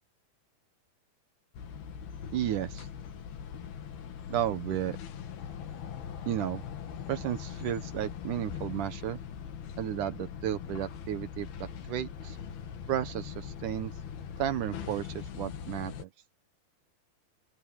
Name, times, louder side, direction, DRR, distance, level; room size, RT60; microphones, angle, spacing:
sound 1, 1.5-16.0, left 8 dB, 85° left, 4.0 m, -41 dB
voice 1, 2.3-2.9 4.3-5.0 6.3-6.6 7.1-9.2 9.8-11.5 11.9-12.4 12.9-13.9 14.4-16.1, right 11 dB, 70° right, 2.2 m, -33 dB
open air
omnidirectional pair, 4.3 m